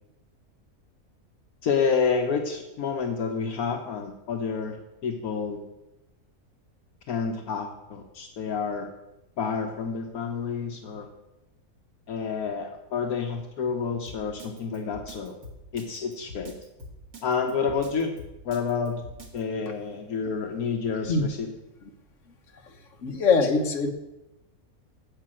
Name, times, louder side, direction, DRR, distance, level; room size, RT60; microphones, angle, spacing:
voice 1, 1.6-4.8 5.0-5.6 7.1-8.9 9.4-11.1 12.1-15.3 15.7-16.5 17.2-18.1 18.4-19.0 19.3-21.5, left 5 dB, 70° left, 3 dB, 1.4 m, -29 dB
Drum kit, 14.1-19.4, equal, 90° right, 2.4 m, -44 dB
voice 2, 23.0-23.9, left 4 dB, 55° left, 4 dB, 1.5 m, -23 dB
9.8 x 7.6 x 7.5 m, 0.95 s
omnidirectional pair, 1.6 m